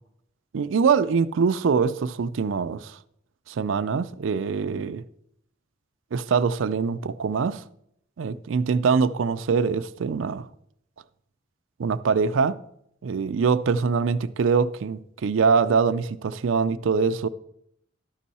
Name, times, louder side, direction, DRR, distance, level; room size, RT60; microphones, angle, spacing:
voice 1, 0.5-3.0 3.5-5.0 6.1-7.6 8.2-10.5 11.8-12.6 13.0-17.3, right 5 dB, 75° right, 0.4 m, -23 dB
12.5 x 5.4 x 4.1 m
head